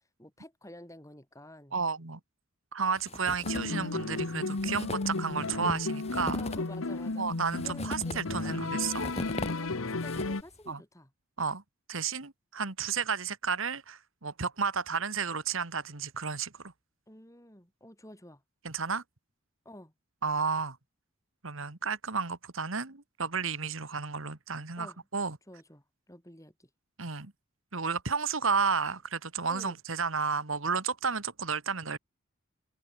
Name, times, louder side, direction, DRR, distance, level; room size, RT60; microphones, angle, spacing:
voice 1, 0.0-1.8 6.3-7.3 7.6-8.6 9.6-11.1 17.1-18.4 19.6-19.9 24.8-25.1 25.5-26.7 29.5-29.8, left 1 dB, 15° left, 6.2 m, -50 dB
voice 2, 1.7-2.2 2.7-6.4 7.2-9.1 10.7-10.8 11.4-11.6 11.9-16.6 18.7-19.0 20.2-20.8 21.4-25.4 27.0-27.3 27.7-32.0, right 5 dB, 75° right, 1.8 m, -32 dB
sound 1, 3.0-3.8 4.1-4.2 4.5-10.5, left 1 dB, 30° left, 2.7 m, -40 dB
sound 2, 3.4-10.4, left 2 dB, 80° left, 1.2 m, -33 dB
head